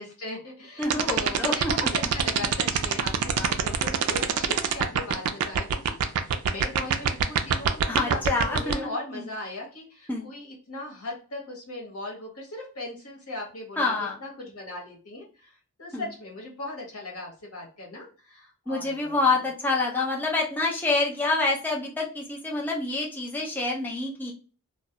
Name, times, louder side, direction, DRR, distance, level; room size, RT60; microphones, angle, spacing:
voice 1, 0.0-8.2 8.5-13.9 14.2-19.4, left 2 dB, 70° left, -1 dB, 1.0 m, -38 dB
voice 2, 0.8-1.7 7.9-9.2 10.1-10.3 13.8-14.2 15.9-16.1 18.7-24.3, left 3 dB, 10° left, -2 dB, 0.3 m, -27 dB
sound 1, 0.8-8.7, right 8 dB, 85° right, 0.3 m, -23 dB
2.2 x 2.1 x 2.7 m, 0.37 s
head